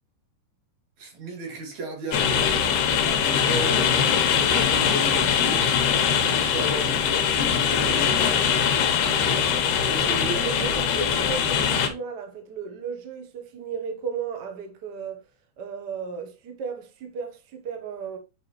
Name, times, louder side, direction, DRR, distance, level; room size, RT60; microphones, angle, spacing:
voice 1, 1.0-2.4 3.0-5.7 6.2-8.3 9.9-10.5 11.0-11.1, equal, 60° right, 3.3 m, -34 dB
sound 1, 2.1-11.9, left 7 dB, 75° left, 2.4 m, -22 dB
voice 2, 10.0-15.2 15.6-18.2, right 6 dB, 85° right, 0.9 m, -35 dB
7.5 x 5.0 x 3.1 m
omnidirectional pair, 3.7 m